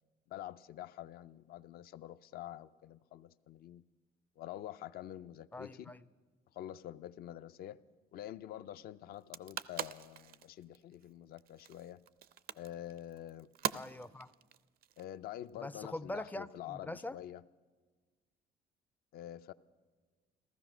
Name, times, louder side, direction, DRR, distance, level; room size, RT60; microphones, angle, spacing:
voice 1, 0.3-3.8 4.4-5.9 6.5-7.8 8.1-12.0 12.5-13.5 15.0-17.4 19.1-19.5, left 12 dB, 65° left, 0.5 m, -47 dB
voice 2, 5.5-6.0 13.7-14.3 15.5-17.2, left 1 dB, 10° left, 0.4 m, -43 dB
sound 1, 9.1-15.5, right 11 dB, 65° right, 0.5 m, -43 dB
16.0 x 14.0 x 6.1 m
cardioid pair, 110°, 17 cm